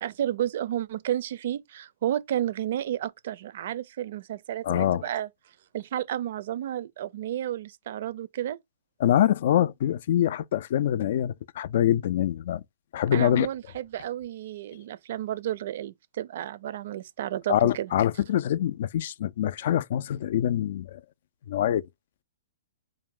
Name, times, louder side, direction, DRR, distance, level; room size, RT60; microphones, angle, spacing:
voice 1, 0.0-5.3 5.7-8.6 13.1-17.9, right 11 dB, 55° right, 0.5 m, -32 dB
voice 2, 4.6-5.0 9.0-12.6 12.9-13.5 17.5-21.0 21.5-21.8, left 11 dB, 55° left, 0.3 m, -24 dB
4.7 x 2.5 x 3.6 m
hypercardioid pair, 150°, 0 cm